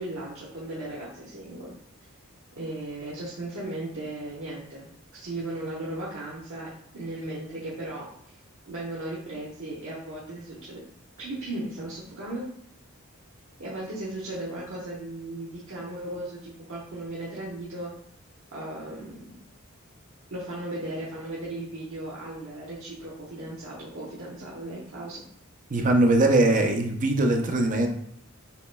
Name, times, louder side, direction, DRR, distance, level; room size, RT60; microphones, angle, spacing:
voice 1, 0.0-1.7 2.6-6.7 6.9-8.0 8.7-10.8 11.2-12.5 13.6-17.9 18.5-19.4 20.3-25.2, right 1 dB, 65° right, -7 dB, 1.2 m, -36 dB
voice 2, 25.7-27.9, right 2 dB, 40° right, 4 dB, 0.6 m, -21 dB
7.0 x 3.0 x 2.3 m, 0.69 s
head